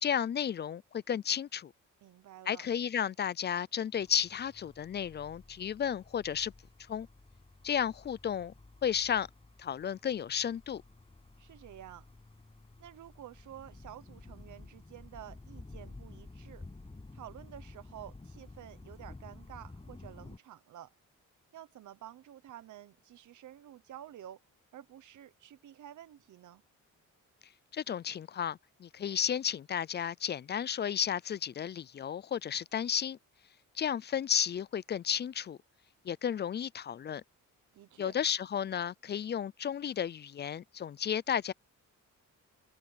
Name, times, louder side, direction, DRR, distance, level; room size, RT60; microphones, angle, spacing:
voice 1, 0.0-1.7 2.5-6.5 6.9-7.1 7.6-8.5 8.8-9.3 9.6-10.8 27.7-33.2 33.8-35.6 36.0-37.2 38.0-41.5, left 8 dB, 35° left, 0.4 m, -33 dB
voice 2, 2.0-2.6 11.4-12.1 12.8-16.6 17.1-20.9 21.5-24.4 24.7-26.6 37.7-38.2, right 11 dB, 70° right, 1.1 m, -50 dB
sound 1, 3.9-20.4, left 2 dB, 20° left, 7.0 m, -52 dB
cardioid pair, 115°, 31 cm